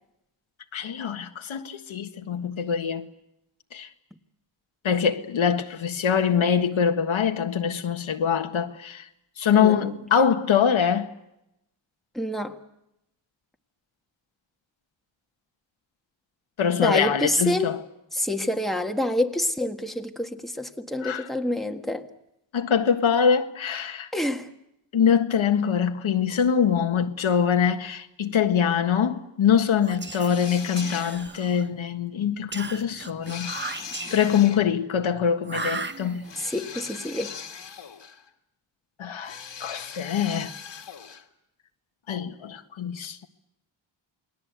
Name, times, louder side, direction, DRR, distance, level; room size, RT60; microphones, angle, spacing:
voice 1, 0.7-3.1 3.7-3.9 4.8-9.1 9.4-11.1 16.6-17.8 21.0-21.3 22.5-24.1 24.9-33.5 34.1-36.3 39.0-40.5 42.1-43.3, left 7 dB, 85° left, 1.6 m, -24 dB
voice 2, 9.6-10.0 12.1-12.6 16.8-17.8 18.1-22.1 24.1-24.5 36.4-37.3, left 1 dB, ahead, 1.6 m, -27 dB
Whispering, 29.8-31.8 32.5-34.5 35.4-36.5, right 4 dB, 25° right, 1.1 m, -36 dB
sound 1, 30.3-31.4 33.2-34.6 36.2-38.3 39.2-41.3, left 7 dB, 65° left, 2.1 m, -40 dB
29.0 x 20.5 x 8.2 m
wide cardioid pair, 115°, 46 cm